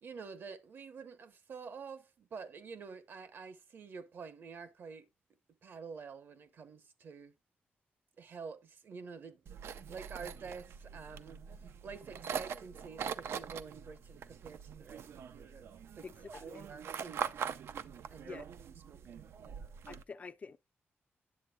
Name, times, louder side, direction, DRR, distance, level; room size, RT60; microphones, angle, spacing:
voice 1, 0.0-5.0 5.6-7.3 8.2-15.7 16.0-17.3 18.1-19.7, right 5 dB, 60° right, 1.0 m, -49 dB
sound 1, 9.5-20.0, right 7 dB, 90° right, 0.5 m, -43 dB
voice 2, 16.0-16.7 18.2-18.4 19.9-20.6, left 5 dB, 35° left, 0.4 m, -47 dB
9.7 x 7.8 x 2.3 m
wide cardioid pair, 165°, 4 cm